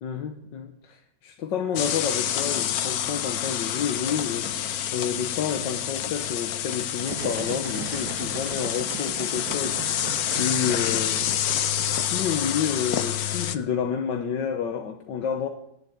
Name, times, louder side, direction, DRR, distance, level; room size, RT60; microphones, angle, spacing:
voice 1, 0.0-11.2 12.1-15.5, left 7 dB, 85° left, 1.7 m, -30 dB
sound 1, 1.8-13.6, left 10 dB, 60° left, 1.2 m, -28 dB
sound 2, 7.0-12.8, right 6 dB, 70° right, 1.7 m, -38 dB
18.0 x 8.2 x 9.3 m
omnidirectional pair, 1.9 m